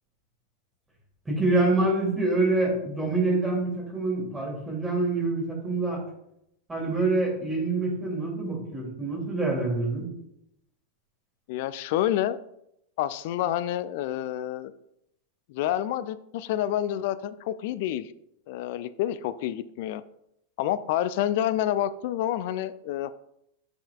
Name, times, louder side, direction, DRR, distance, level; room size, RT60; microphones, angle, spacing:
voice 1, 1.2-6.0 6.7-10.1, right 2 dB, 10° right, -2 dB, 2.7 m, -26 dB
voice 2, 11.5-12.4 13.0-14.7 15.5-18.1 18.5-20.0 20.6-23.1, left 12 dB, 50° left, 15 dB, 0.3 m, -28 dB
9.6 x 5.6 x 2.4 m, 0.78 s
figure-of-eight pair, 90°, 0 cm